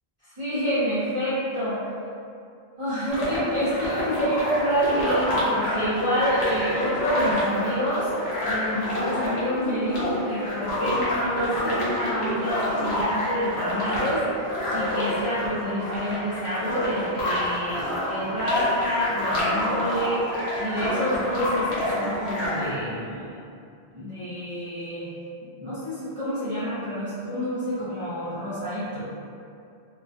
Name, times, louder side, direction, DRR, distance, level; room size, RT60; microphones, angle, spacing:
voice 1, 0.4-1.9 2.8-8.1 8.4-14.2 14.7-20.2 20.6-23.4 23.9-25.1 25.6-29.1, equal, 40° right, -13 dB, 0.5 m, -28 dB
sound 1, 3.1-22.7, left 1 dB, 80° left, 1.0 m, -28 dB
2.3 x 2.3 x 2.4 m, 2.5 s
omnidirectional pair, 1.1 m